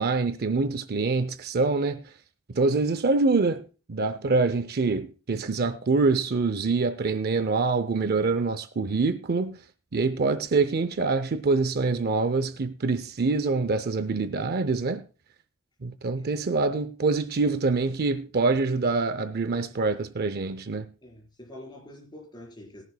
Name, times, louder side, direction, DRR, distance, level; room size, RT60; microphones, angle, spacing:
voice 1, 0.0-2.0 2.5-3.6 3.9-9.6 9.9-15.0 15.8-20.9, right 3 dB, 45° right, 0.5 m, -25 dB
voice 2, 16.2-16.7 21.0-22.8, left 1 dB, 20° left, 4.3 m, -46 dB
20.0 x 11.0 x 2.2 m
head